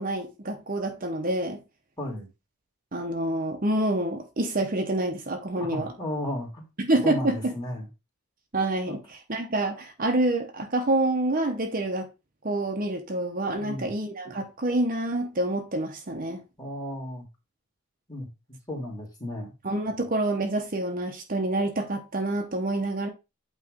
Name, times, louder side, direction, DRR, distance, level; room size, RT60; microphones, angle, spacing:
voice 1, 0.0-1.6 2.9-5.9 6.8-7.5 8.5-12.1 12.4-16.4 19.6-23.1, right 2 dB, 40° right, 0.9 m, -27 dB
voice 2, 2.0-2.3 5.6-6.7 7.0-7.9 8.9-9.0 13.6-13.9 16.6-17.2 18.1-18.3 18.7-19.5, left 1 dB, 15° left, 2.4 m, -34 dB
8.6 x 3.2 x 5.1 m
head